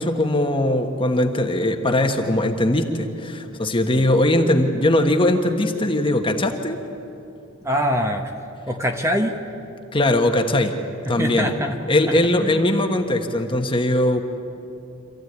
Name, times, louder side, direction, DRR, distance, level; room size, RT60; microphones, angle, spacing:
voice 1, 0.0-6.8 9.9-10.8 11.1-11.5 11.9-14.2, left 1 dB, 25° left, 4 dB, 1.4 m, -20 dB
voice 2, 7.6-8.3 8.7-9.4 11.0-11.8 12.1-12.6, equal, 15° right, 3 dB, 1.2 m, -24 dB
26.5 x 15.0 x 9.5 m, 2.7 s
head